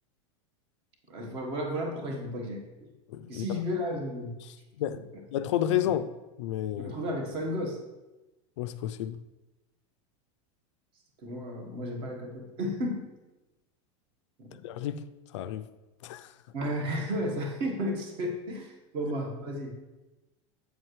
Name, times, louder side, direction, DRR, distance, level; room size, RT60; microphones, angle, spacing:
voice 1, 1.1-2.9 3.3-4.4 4.9-5.0 5.8-5.9 6.8-7.8 11.2-13.1 14.4-14.6 16.5-19.7, equal, 35° right, 1.3 m, -33 dB
voice 2, 3.1-3.5 4.8-5.0 5.3-6.1 6.4-6.9 8.6-9.2 14.6-15.0 15.3-15.7 16.0-16.3, left 11 dB, 70° left, 0.4 m, -30 dB
7.9 x 7.6 x 3.2 m
supercardioid pair, 170°, 16 cm